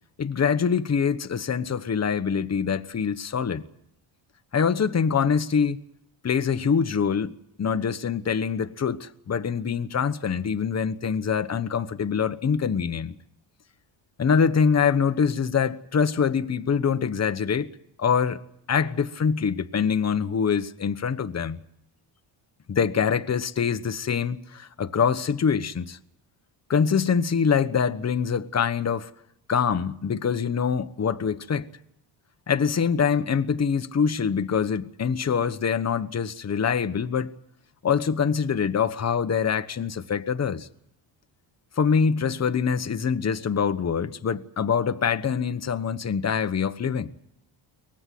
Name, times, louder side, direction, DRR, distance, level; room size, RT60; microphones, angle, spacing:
voice 1, 0.2-3.6 4.5-5.8 6.2-13.1 14.2-17.7 18.0-18.4 18.7-21.6 22.7-26.0 26.7-29.1 29.5-31.7 32.5-37.3 37.8-40.7 41.8-47.1, left 6 dB, 35° left, 1.2 m, -24 dB
23.5 x 19.0 x 7.7 m
cardioid pair, 95°, 48 cm